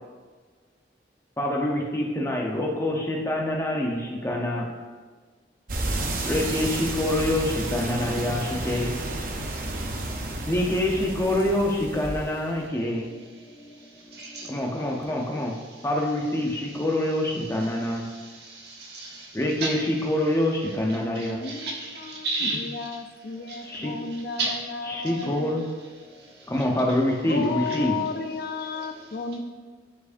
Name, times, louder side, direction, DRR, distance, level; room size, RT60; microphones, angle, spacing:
voice 1, 1.4-4.7 6.2-13.2 13.5-15.5 15.8-18.1 19.3-21.5 23.6-24.0 24.9-25.8 26.1-26.2 26.5-29.1, left 1 dB, 15° left, 0 dB, 0.7 m, -27 dB
sound 1, 5.7-12.6, right 2 dB, 45° right, 0.7 m, -31 dB
voice 2, 14.1-14.6 17.9-19.8 21.1-23.0 23.5-23.8 24.1-24.6 25.2-25.3 26.4-26.5 28.8-28.9, right 2 dB, 60° right, -2 dB, 1.3 m, -33 dB
voice 3, 21.4-25.6 27.3-29.4, left 4 dB, 50° left, 6 dB, 0.5 m, -33 dB
9.6 x 4.7 x 2.6 m, 1.5 s
head